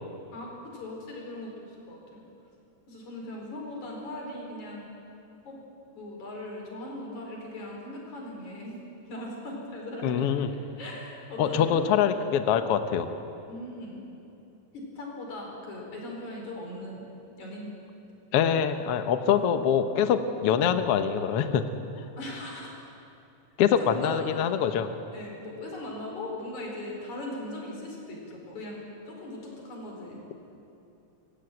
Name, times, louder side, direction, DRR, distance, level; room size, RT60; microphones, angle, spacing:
voice 1, 0.3-2.3 2.9-4.9 5.4-5.6 5.9-10.3 10.8-11.8 13.5-14.0 14.7-17.0 17.4-17.7 19.2-19.4 22.2-22.8 23.8-24.2 25.1-30.2, left 1 dB, 55° left, -1 dB, 5.8 m, -39 dB
voice 2, 10.0-10.5 11.4-13.1 18.3-21.6 23.6-24.9, left 8 dB, 90° left, 8 dB, 1.3 m, -24 dB
24.0 x 15.5 x 9.3 m, 2.8 s
omnidirectional pair, 4.2 m